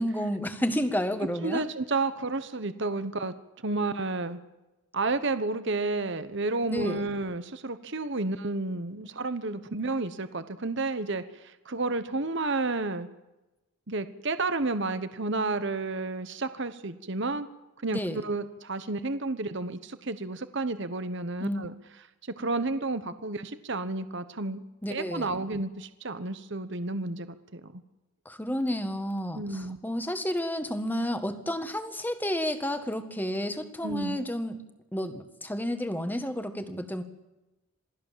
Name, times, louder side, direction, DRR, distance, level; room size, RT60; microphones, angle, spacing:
voice 1, 0.0-1.6 6.7-7.0 17.9-18.2 21.4-21.6 24.8-25.4 28.3-34.6 34.9-37.0, equal, 10° left, 8 dB, 1.6 m, -31 dB
voice 2, 1.4-3.3 3.6-4.4 4.9-13.1 13.9-17.5 17.8-21.7 22.2-24.6 24.9-27.8 29.3-29.8 33.8-34.2, right 3 dB, 55° right, 11 dB, 1.2 m, -31 dB
27.5 x 19.0 x 7.5 m, 1.0 s
head